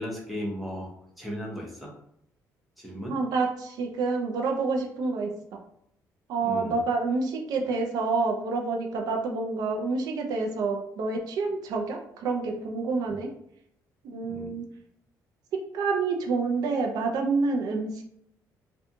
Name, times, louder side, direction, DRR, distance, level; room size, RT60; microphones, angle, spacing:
voice 1, 0.0-1.9 2.8-3.2 6.4-6.8 13.1-13.2 14.2-14.5, equal, ahead, -2 dB, 0.6 m, -36 dB
voice 2, 3.0-5.6 6.3-13.3 14.0-14.7 15.7-18.0, right 4 dB, 70° right, 2 dB, 0.4 m, -28 dB
2.5 x 2.2 x 2.7 m, 0.73 s
cardioid pair, 140°, 7 cm